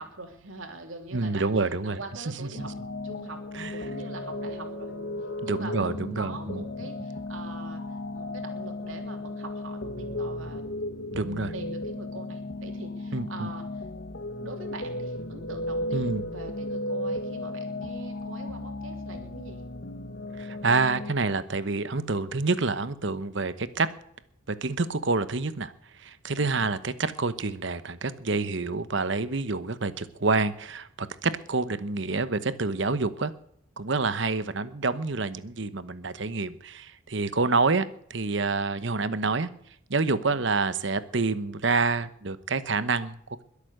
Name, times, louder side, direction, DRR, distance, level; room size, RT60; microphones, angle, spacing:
voice 1, 0.0-1.5 1.8-2.7 3.0-3.4 3.7-4.9 5.4-7.8 8.1-10.9 11.5-13.7 14.4-19.6 26.4-26.7 40.2-40.4, right 2 dB, 80° right, 4 dB, 3.3 m, -43 dB
voice 2, 1.1-2.0 2.4-2.7 3.5-3.7 5.4-6.6 11.1-11.5 13.1-13.5 15.9-16.2 20.4-23.9 24.5-25.7 26.0-33.3 33.8-39.5 39.9-43.4, right 3 dB, 60° right, 13 dB, 1.0 m, -27 dB
sound 1, 2.5-21.1, left 1 dB, 65° left, 1.4 m, -35 dB
22.0 x 8.4 x 6.6 m, 0.69 s
head